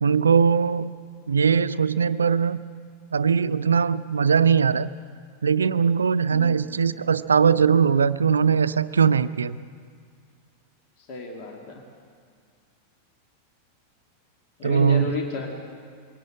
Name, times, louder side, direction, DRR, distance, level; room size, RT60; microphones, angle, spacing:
voice 1, 0.0-0.9 1.3-2.6 3.1-4.9 5.4-9.6 14.6-15.0, right 6 dB, 70° right, 15 dB, 0.5 m, -20 dB
voice 2, 6.3-6.6 11.0-11.8 14.6-15.5, left 4 dB, 45° left, 2 dB, 2.4 m, -32 dB
21.5 x 17.0 x 7.6 m, 2.1 s
figure-of-eight pair, 90°, 0 cm